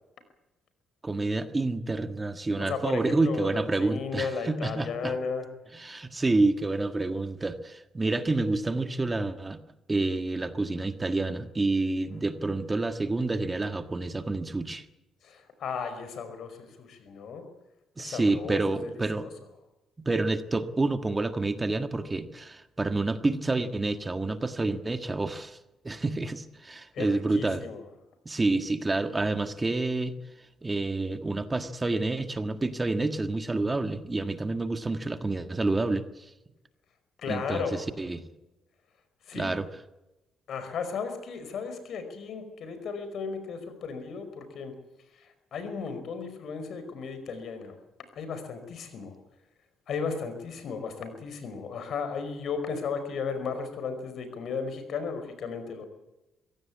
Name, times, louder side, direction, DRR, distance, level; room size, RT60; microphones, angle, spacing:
voice 1, 1.0-5.1 5.7-9.6 9.9-14.8 18.0-19.3 20.0-25.6 25.8-27.6 28.2-30.1 30.6-36.3 37.3-38.2 39.3-39.7, right 2 dB, 20° right, 8 dB, 1.6 m, -28 dB
voice 2, 2.6-5.5 15.2-17.4 18.0-19.3 26.9-27.8 37.2-37.9 39.3-39.6 40.5-44.7 45.2-47.8 48.1-49.2 49.9-55.8, left 5 dB, 65° left, 9 dB, 5.1 m, -35 dB
23.5 x 16.5 x 8.7 m, 1.0 s
cardioid pair, 90°, 0 cm